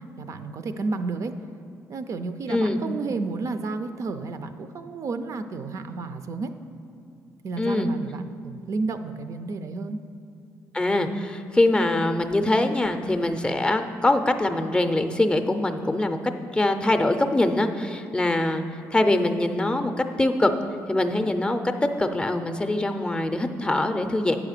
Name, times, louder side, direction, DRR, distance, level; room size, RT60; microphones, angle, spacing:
voice 1, 0.0-1.4 1.9-6.5 7.4-10.0, right 3 dB, 55° right, 9 dB, 0.4 m, -31 dB
voice 2, 7.6-7.9 10.7-16.2 16.5-18.6 18.9-19.9 20.2-20.5 20.9-21.7 22.0-24.4, left 2 dB, 15° left, 7 dB, 0.5 m, -23 dB
8.4 x 4.9 x 6.6 m, 2.4 s
cardioid pair, 85°, 7 cm